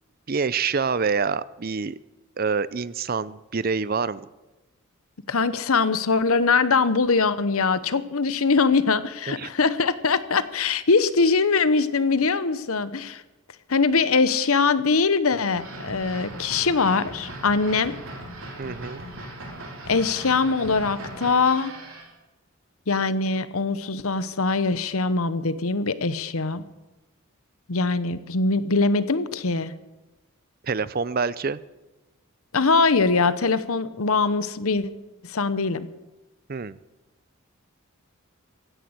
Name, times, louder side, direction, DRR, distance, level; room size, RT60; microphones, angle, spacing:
voice 1, 0.3-2.0 2.4-4.3 9.3-9.5 18.6-19.0 30.6-31.6 36.5-36.8, right 5 dB, 40° right, 17 dB, 0.5 m, -26 dB
voice 2, 5.3-13.2 13.7-18.0 19.9-21.7 22.9-26.6 27.7-29.7 32.5-34.9 35.2-35.9, left 4 dB, 75° left, 14 dB, 0.9 m, -22 dB
sound 1, 15.5-22.1, right 1 dB, 65° right, 3.4 m, -39 dB
16.0 x 10.5 x 8.0 m, 1.1 s
head